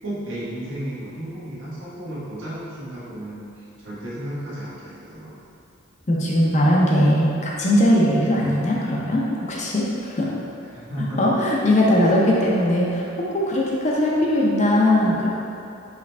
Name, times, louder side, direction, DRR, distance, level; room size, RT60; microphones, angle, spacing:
voice 1, 0.0-5.3 10.7-11.3, right 1 dB, 75° right, -9 dB, 1.4 m, -33 dB
voice 2, 6.1-10.3 11.2-15.3, left 1 dB, 35° left, -4 dB, 0.6 m, -20 dB
4.9 x 3.1 x 3.3 m, 2.7 s
head